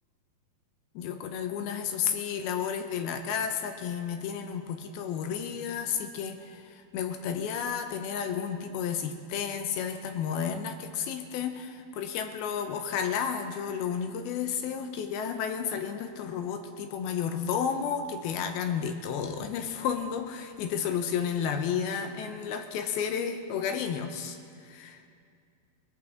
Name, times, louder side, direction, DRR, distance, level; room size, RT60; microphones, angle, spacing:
voice 1, 1.0-25.0, left 7 dB, 75° left, 6 dB, 2.4 m, -32 dB
20.5 x 14.5 x 3.8 m, 2.3 s
omnidirectional pair, 5.0 m